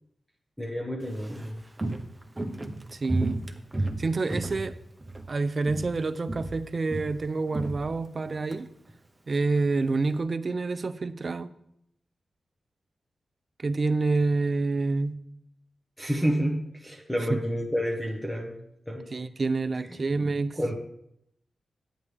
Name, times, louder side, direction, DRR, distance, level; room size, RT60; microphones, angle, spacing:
voice 1, 0.6-1.6 16.0-19.1 20.6-20.7, equal, ahead, 1.3 m, -29 dB
Walk footsteps, 1.0-5.3 5.6-6.0 6.3-8.6 8.9-9.0, right 2 dB, 20° right, 1.0 m, -33 dB
voice 2, 2.9-3.4 4.0-4.8 5.3-8.7 9.3-11.5 13.6-15.2 17.3-17.4 19.1-20.7, right 3 dB, 45° right, 0.6 m, -28 dB
9.5 x 9.0 x 3.5 m
cardioid pair, 65°, 0 cm